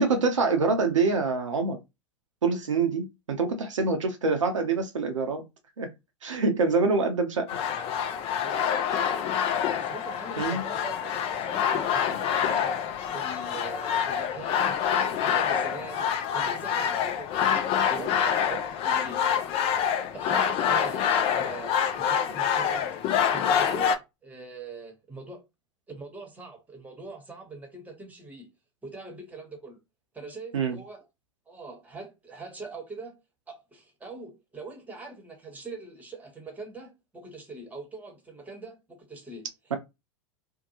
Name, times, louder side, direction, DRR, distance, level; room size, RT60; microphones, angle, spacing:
voice 1, 0.0-1.8 2.4-5.4 5.8-5.9 6.2-7.5 10.4-10.6 30.5-30.7, right 4 dB, 80° right, 0.6 m, -25 dB
sound 1, 7.5-24.0, left 8 dB, 40° left, 0.5 m, -26 dB
voice 2, 8.4-9.3 9.8-12.7 13.1-14.8 15.1-16.1 16.3-19.2 20.1-22.9 23.3-25.4 25.9-28.5 28.8-29.8 30.1-31.1 31.5-33.2 33.5-39.5, right 3 dB, 10° right, 1.1 m, -42 dB
2.6 x 2.2 x 2.8 m
figure-of-eight pair, 90°, 16 cm